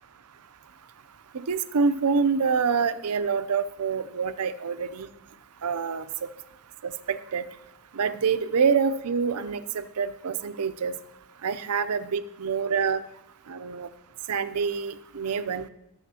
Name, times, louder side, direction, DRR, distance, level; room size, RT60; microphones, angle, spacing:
voice 1, 1.3-5.1 5.6-6.3 6.8-7.4 7.9-11.0 11.4-13.0 13.5-13.9 14.3-15.7, right 5 dB, 90° right, 12 dB, 0.6 m, -26 dB
18.0 x 7.1 x 2.8 m, 0.89 s
head